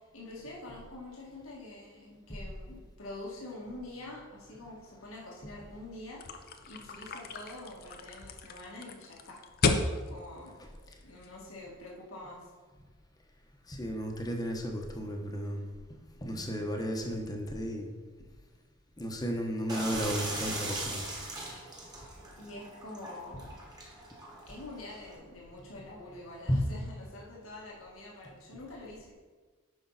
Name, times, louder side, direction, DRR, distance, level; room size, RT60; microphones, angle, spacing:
voice 1, 0.1-9.4 10.1-10.6 11.0-12.4 22.4-23.5 24.5-29.1, left 2 dB, 90° left, -4 dB, 1.9 m, -46 dB
sound 1, 6.2-11.5, left 3 dB, 50° left, 0.6 m, -34 dB
voice 2, 13.7-15.6 16.2-17.9 19.0-21.0 26.5-26.6, equal, 20° left, 2 dB, 1.0 m, -33 dB
sound 2, 19.7-25.2, right 2 dB, 20° right, 1.5 m, -40 dB
9.6 x 5.4 x 4.1 m, 1.4 s
head